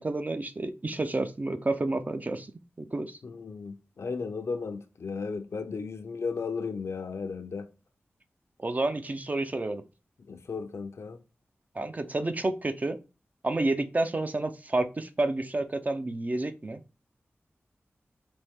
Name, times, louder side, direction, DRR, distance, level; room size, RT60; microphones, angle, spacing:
voice 1, 0.0-2.5 2.8-3.2 8.6-9.8 11.7-13.0 13.4-16.8, right 2 dB, 35° right, 0.5 m, -30 dB
voice 2, 3.2-7.7 10.3-11.2, left 5 dB, 75° left, 0.5 m, -35 dB
4.3 x 3.1 x 3.5 m
wide cardioid pair, 65°, 5 cm